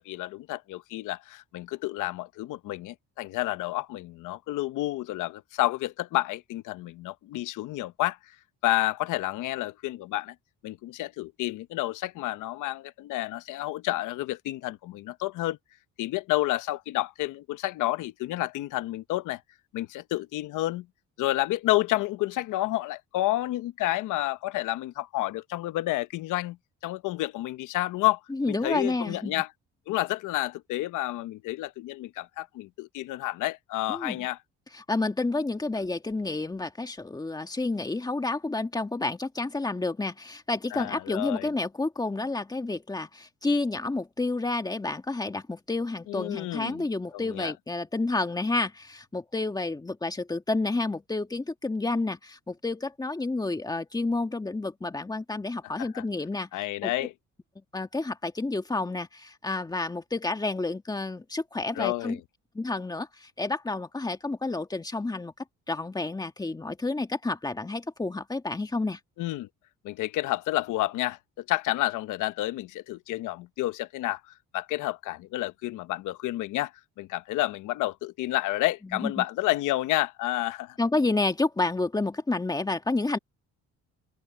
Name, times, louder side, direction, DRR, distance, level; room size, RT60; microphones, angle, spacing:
voice 1, 0.0-8.3 8.6-10.3 10.6-15.6 16.0-19.4 19.7-20.9 21.2-26.6 26.8-28.2 28.5-29.5 29.9-34.4 40.7-41.5 46.1-46.8 47.1-47.5 55.8-56.0 56.5-57.1 61.7-62.2 69.2-69.5 69.8-76.7 77.0-80.8, left 16 dB, 85° left, 0.9 m, -30 dB
voice 2, 28.3-29.3 33.9-34.3 34.7-56.5 56.8-56.9 57.7-62.2 62.5-65.3 65.7-69.0 78.9-79.2 80.8-83.2, left 2 dB, 15° left, 1.8 m, -30 dB
open air
cardioid pair, 130°, 30 cm